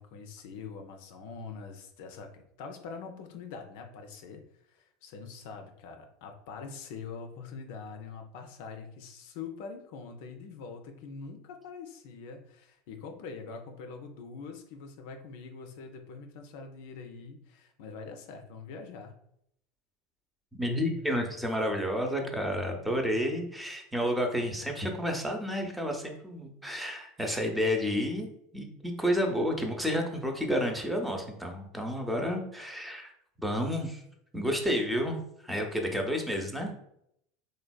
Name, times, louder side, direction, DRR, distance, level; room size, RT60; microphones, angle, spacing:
voice 1, 0.0-19.1, left 5 dB, 65° left, 5 dB, 0.4 m, -44 dB
voice 2, 20.5-33.1 33.4-34.0 34.3-36.8, equal, 5° right, 2 dB, 0.6 m, -30 dB
3.2 x 2.1 x 2.3 m, 0.74 s
hypercardioid pair, 80°, 0 cm